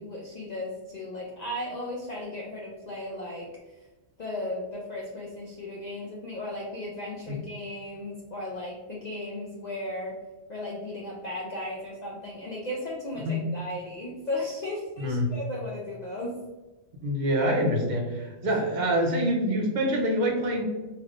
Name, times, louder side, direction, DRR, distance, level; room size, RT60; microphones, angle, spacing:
voice 1, 0.0-3.5 4.2-10.2 10.5-16.4, left 1 dB, 55° left, -4 dB, 0.5 m, -35 dB
voice 2, 15.0-15.3 17.0-20.6, equal, 50° right, 0 dB, 0.7 m, -26 dB
3.3 x 2.9 x 2.4 m, 1.2 s
omnidirectional pair, 1.1 m